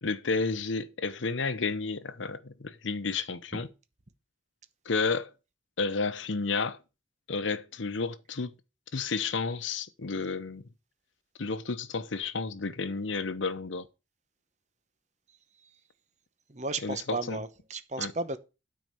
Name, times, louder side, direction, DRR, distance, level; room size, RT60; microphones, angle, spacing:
voice 1, 0.0-3.7 4.9-5.3 5.8-6.8 7.3-8.5 8.9-10.6 11.4-13.9 16.8-17.4 18.0-18.1, left 4 dB, 85° left, 0.8 m, -31 dB
voice 2, 16.5-18.4, right 3 dB, 40° right, 0.9 m, -34 dB
9.3 x 4.7 x 6.9 m
head